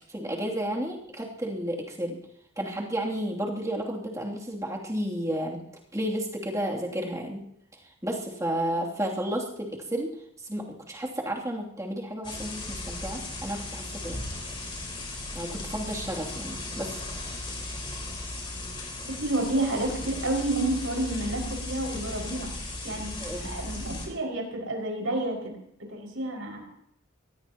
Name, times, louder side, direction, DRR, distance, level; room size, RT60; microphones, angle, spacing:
voice 1, 0.1-2.2 2.6-5.6 5.9-7.4 8.0-10.1 10.5-14.2 15.3-17.0 23.2-23.5, right 1 dB, 15° right, -2 dB, 2.8 m, -32 dB
sound 1, 12.2-24.1, left 2 dB, 25° left, 4.4 m, -36 dB
voice 2, 19.1-22.5 22.8-25.6 25.9-26.7, right 1 dB, 70° right, 0 dB, 5.7 m, -30 dB
24.0 x 18.0 x 3.0 m, 0.72 s
head